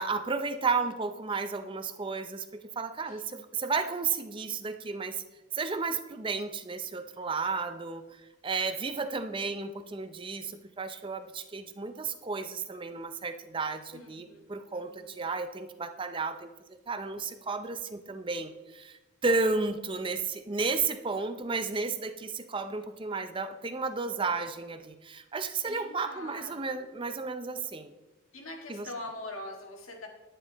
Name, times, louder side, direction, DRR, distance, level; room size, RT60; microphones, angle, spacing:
voice 1, 0.0-5.2 5.5-8.0 8.4-27.9 28.7-28.9, right 4 dB, 25° right, 9 dB, 0.5 m, -33 dB
voice 2, 13.9-14.5 14.7-15.2 25.7-27.1 28.3-30.1, left 2 dB, 70° left, 2 dB, 1.9 m, -44 dB
10.0 x 9.9 x 4.0 m, 1.1 s
head